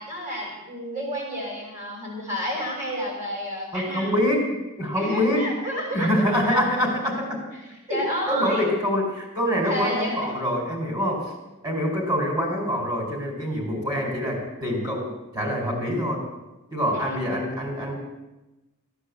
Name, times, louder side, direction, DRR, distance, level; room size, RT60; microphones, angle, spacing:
voice 1, 0.0-4.2 4.9-6.7 7.9-8.7 9.6-10.3 16.9-17.2, equal, 35° right, -3 dB, 7.5 m, -30 dB
voice 2, 3.7-4.5 4.8-5.5 5.9-7.4 7.9-11.2 11.6-16.2 16.7-17.9, equal, 15° right, 1 dB, 4.6 m, -25 dB
15.5 x 10.0 x 8.3 m, 1.0 s
head